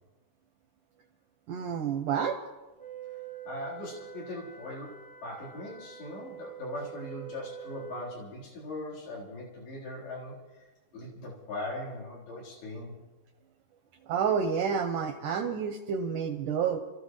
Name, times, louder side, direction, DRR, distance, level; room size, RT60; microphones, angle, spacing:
voice 1, 1.5-2.4 14.1-16.8, right 7 dB, 75° right, 6 dB, 2.0 m, -29 dB
Wind instrument woodwind instrument, 2.8-8.2, right 10 dB, 15° right, 1.1 m, -45 dB
voice 2, 3.5-10.7 10.9-13.0, left 2 dB, 75° left, -6 dB, 6.0 m, -40 dB
28.0 x 14.0 x 3.2 m, 1.1 s
omnidirectional pair, 4.4 m